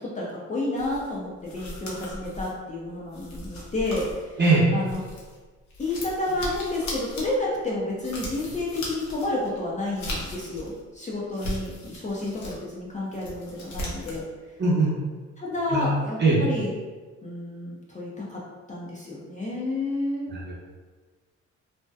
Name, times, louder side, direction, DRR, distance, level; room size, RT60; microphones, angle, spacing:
voice 1, 0.0-4.4 4.7-5.0 5.8-14.2 15.4-16.7 17.2-18.4 18.7-20.3, left 2 dB, 25° left, -5 dB, 0.5 m, -30 dB
sound 1, 0.8-5.4 5.7-10.8 11.2-12.6 13.0-14.3, left 1 dB, 65° left, 0.7 m, -38 dB
voice 2, 14.6-14.9 15.7-15.9 16.2-16.4 20.3-20.5, right 3 dB, 35° right, -5 dB, 0.8 m, -21 dB
2.6 x 2.1 x 2.2 m, 1.4 s
cardioid pair, 90°, 30 cm